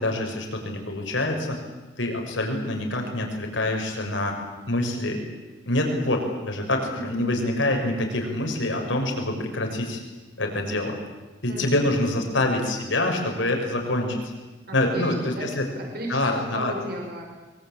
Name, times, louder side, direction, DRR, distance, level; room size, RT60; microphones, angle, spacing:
voice 1, 0.0-1.6 2.0-4.4 4.7-5.2 5.6-10.0 10.4-10.9 11.4-14.2 14.7-15.6 16.1-16.7, left 1 dB, 75° left, 3 dB, 6.0 m, -26 dB
voice 2, 6.8-7.1 11.5-11.7 12.3-12.4 14.7-15.5 15.8-17.3, right 1 dB, 55° right, 1 dB, 5.6 m, -35 dB
24.0 x 23.5 x 9.0 m, 1.2 s
head